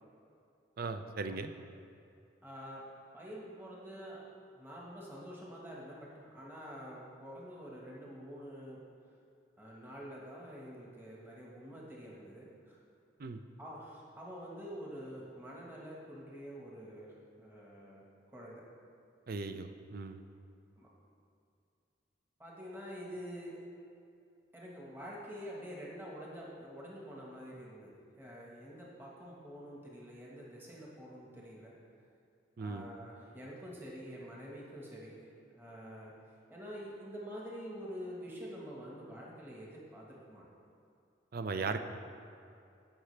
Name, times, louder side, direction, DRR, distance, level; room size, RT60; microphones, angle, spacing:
voice 1, 0.8-1.5 13.2-13.4 19.3-20.2 32.6-32.9 41.3-41.8, right 4 dB, 50° right, 8 dB, 0.5 m, -37 dB
voice 2, 2.4-2.9 3.1-4.3 4.5-8.8 9.6-12.8 13.6-18.0 18.3-18.6 20.8-20.9 22.4-23.6 24.5-27.9 28.2-31.7 32.6-35.2 35.5-36.1 36.5-40.4, equal, 10° right, -5 dB, 1.4 m, -47 dB
16.0 x 5.9 x 3.3 m, 2.6 s
head